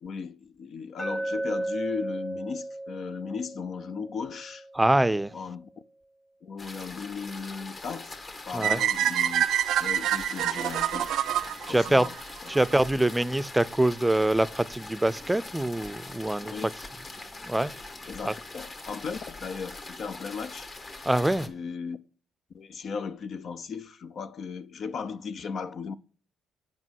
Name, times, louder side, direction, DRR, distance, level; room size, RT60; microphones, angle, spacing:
voice 1, 0.0-4.7 5.3-5.7 6.4-9.4 9.8-11.1 11.7-12.2 12.4-12.6 16.5-16.7 18.1-20.7 21.4-22.0 22.5-25.9, left 5 dB, 60° left, 0.5 m, -36 dB
Glass, 1.0-5.1, right 1 dB, 10° left, 1.0 m, -35 dB
voice 2, 4.8-5.3 8.5-8.8 11.7-12.1 12.5-16.5 17.4-17.7 18.3-18.4 21.1-21.5, right 1 dB, 10° right, 0.5 m, -24 dB
sound 1, 6.6-21.5, left 2 dB, 40° left, 1.5 m, -43 dB
sound 2, 8.6-12.7, right 11 dB, 75° right, 0.4 m, -27 dB
7.4 x 5.3 x 6.3 m
supercardioid pair, 60°, 0 cm